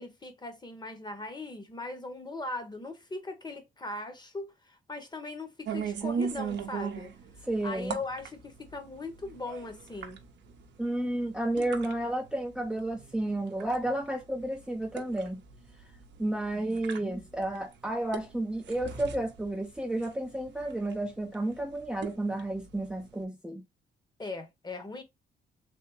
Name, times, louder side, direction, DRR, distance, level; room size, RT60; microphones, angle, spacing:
voice 1, 0.0-7.1 7.6-10.2 24.2-25.0, left 2 dB, 20° left, 1.0 m, -39 dB
sound 1, 5.7-23.2, right 6 dB, 65° right, 0.7 m, -40 dB
voice 2, 7.5-8.0 10.8-15.4 16.2-23.6, right 1 dB, 5° right, 0.5 m, -32 dB
3.4 x 2.1 x 3.1 m
cardioid pair, 90°, 20 cm